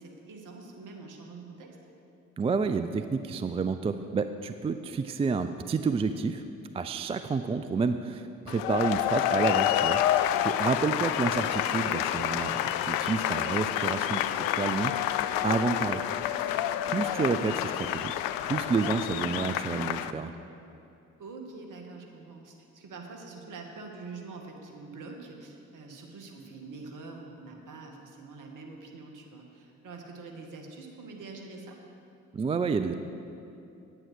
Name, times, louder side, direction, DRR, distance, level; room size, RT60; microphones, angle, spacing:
voice 1, 0.0-1.8 21.2-31.8, right 3 dB, 50° right, 2 dB, 1.8 m, -45 dB
voice 2, 2.4-6.4 6.7-10.0 10.4-16.0 16.4-18.2 18.4-20.3 32.3-32.9, right 4 dB, 15° right, 9 dB, 0.4 m, -30 dB
sound 1, 8.5-20.1, left 12 dB, 60° left, 0.5 m, -28 dB
9.1 x 8.8 x 6.2 m, 2.7 s
figure-of-eight pair, 45°, 39 cm